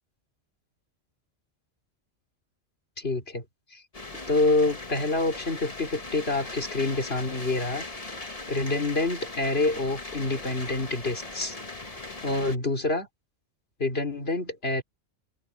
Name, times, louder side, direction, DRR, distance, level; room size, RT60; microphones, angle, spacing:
voice 1, 3.0-3.4 3.7-3.8 4.3-7.8 8.5-11.6 12.2-13.1 13.8-14.8, left 2 dB, 50° left, 3.7 m, -27 dB
sound 1, 3.9-12.6, left 2 dB, 30° left, 1.9 m, -39 dB
open air
omnidirectional pair, 1.3 m